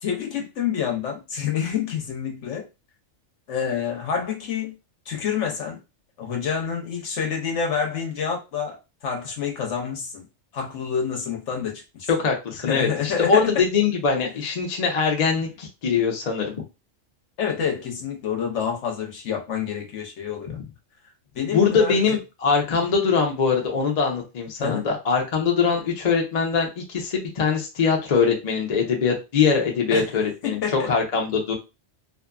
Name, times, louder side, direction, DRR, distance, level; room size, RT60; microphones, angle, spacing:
voice 1, 0.0-2.6 3.5-4.7 5.1-5.8 6.2-8.8 9.0-10.3 10.5-12.1 12.6-13.6 17.4-20.6 21.3-22.2 24.6-24.9 29.9-30.1 30.4-30.9, left 7 dB, 75° left, 1.1 m, -28 dB
voice 2, 12.1-16.5 20.5-20.6 21.5-31.5, left 5 dB, 45° left, 0.6 m, -22 dB
2.6 x 2.5 x 2.3 m
omnidirectional pair, 1.2 m